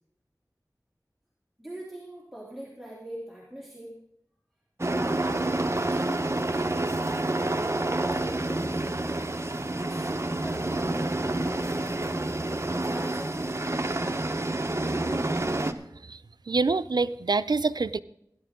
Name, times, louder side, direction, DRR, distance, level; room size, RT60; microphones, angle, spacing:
voice 1, 1.6-3.9 4.9-11.9 12.8-13.8, right 1 dB, ahead, -5 dB, 2.9 m, -42 dB
sound 1, 4.8-15.7, right 2 dB, 40° right, 0.8 m, -28 dB
voice 2, 16.5-18.0, right 3 dB, 80° right, 14 dB, 0.4 m, -25 dB
17.0 x 11.0 x 3.6 m, 0.77 s
wide cardioid pair, 45°, 7 cm